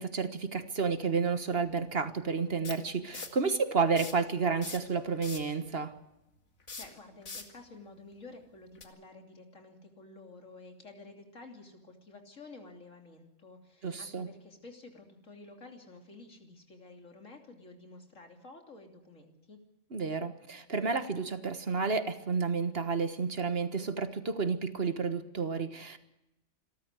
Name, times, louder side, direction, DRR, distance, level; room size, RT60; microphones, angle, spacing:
voice 1, 0.0-5.9 13.8-14.3 19.9-26.0, right 5 dB, 50° right, 10 dB, 1.6 m, -31 dB
sound 1, 1.2-1.3 2.6-3.4 3.9-4.3 4.6-5.6 6.6-7.6 8.7-8.8, left 4 dB, 70° left, 2.4 m, -42 dB
voice 2, 6.8-19.6, left 3 dB, 90° left, 3 dB, 3.4 m, -51 dB
27.5 x 13.0 x 8.1 m, 0.94 s
omnidirectional pair, 1.3 m